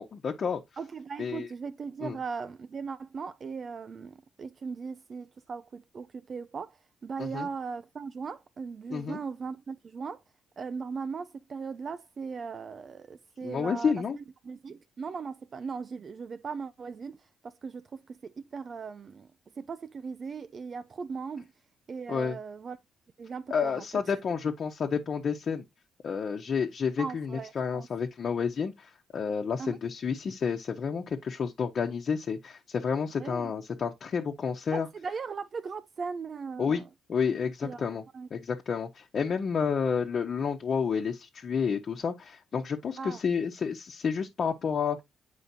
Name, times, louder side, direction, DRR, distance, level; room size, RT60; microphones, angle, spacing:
voice 1, 0.0-0.6 1.2-1.5 2.0-2.2 7.2-7.5 8.9-9.2 13.4-14.2 22.1-22.4 23.5-25.6 26.0-34.9 36.6-36.8 37.1-38.0 38.3-45.0, left 6 dB, 50° left, 1.1 m, -30 dB
voice 2, 0.8-10.2 10.6-17.2 17.4-19.3 19.6-21.5 21.9-22.8 23.2-23.8 27.0-27.9 29.6-29.8 33.2-33.5 34.7-36.9 37.6-37.8 38.1-38.3 43.0-43.2, right 5 dB, 45° right, 0.4 m, -38 dB
8.2 x 5.0 x 2.8 m
cardioid pair, 90°, 0 cm